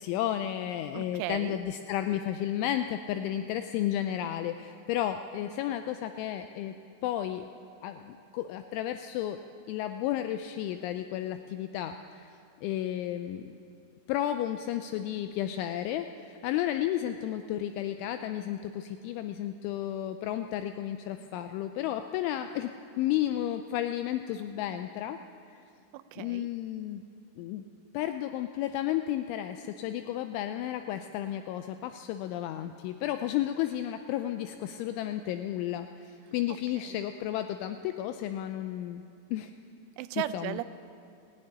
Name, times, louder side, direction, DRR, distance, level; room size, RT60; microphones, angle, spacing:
voice 1, 0.0-6.7 7.0-7.5 7.8-9.4 9.7-12.3 12.6-13.6 14.1-22.7 23.0-25.2 25.5-25.6 26.2-27.0 27.4-27.6 27.9-39.0 39.3-39.5 40.3-40.6, left 12 dB, 80° left, 8 dB, 2.9 m, -32 dB
voice 2, 0.9-1.6 25.9-26.5 36.5-37.0 40.0-40.6, right 14 dB, 85° right, 12 dB, 3.0 m, -36 dB
18.5 x 14.5 x 9.9 m, 2.5 s
omnidirectional pair, 5.6 m